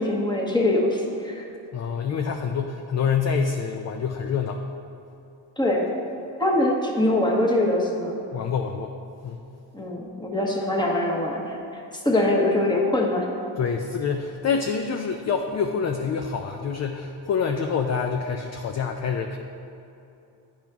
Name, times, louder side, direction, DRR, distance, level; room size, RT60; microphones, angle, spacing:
voice 1, 0.0-1.4 5.6-5.9 6.4-8.2 9.7-13.3, left 1 dB, 10° left, -2 dB, 1.2 m, -23 dB
voice 2, 1.7-4.6 8.3-8.9 9.2-9.4 13.6-19.4, left 6 dB, 40° left, 4 dB, 0.5 m, -26 dB
10.0 x 4.3 x 3.5 m, 2.8 s
cardioid pair, 85°, 44 cm